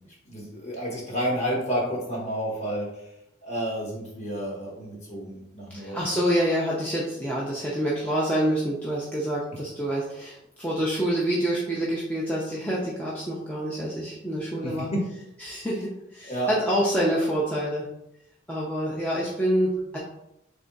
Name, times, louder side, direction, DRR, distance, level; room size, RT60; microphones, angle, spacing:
voice 1, 0.2-3.0 3.4-6.0 14.6-15.0 16.3-16.5, equal, 35° left, -3 dB, 1.2 m, -30 dB
voice 2, 5.7-14.9 15.4-17.9 18.5-20.0, equal, 5° left, -6 dB, 0.6 m, -27 dB
3.5 x 3.4 x 3.9 m, 0.82 s
head